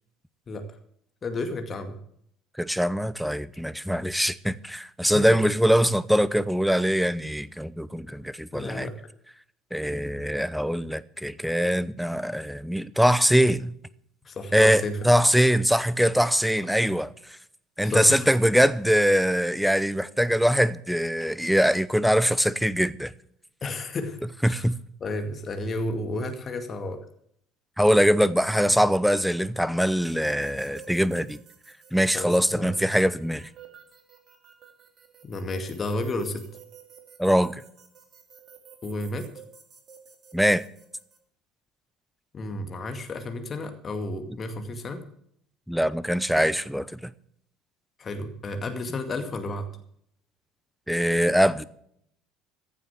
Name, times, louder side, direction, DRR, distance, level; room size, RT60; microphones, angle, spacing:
voice 1, 1.2-2.0 5.1-5.4 7.9-8.0 8.5-8.9 14.2-15.1 16.6-16.7 17.8-18.3 23.6-24.2 24.4-24.7 25.0-27.0 32.1-32.7 35.2-36.4 38.8-39.3 42.3-45.0 48.0-49.7, left 2 dB, 35° left, 2.1 m, -32 dB
voice 2, 2.6-8.9 9.7-13.7 14.5-17.4 17.8-23.1 24.4-24.8 27.8-31.4 31.9-33.5 37.2-37.6 40.3-40.7 45.7-47.1 50.9-51.6, equal, ahead, 0.8 m, -22 dB
sound 1, 29.9-41.2, right 7 dB, 40° right, 2.7 m, -51 dB
15.0 x 7.4 x 8.1 m
figure-of-eight pair, 65°, 0 cm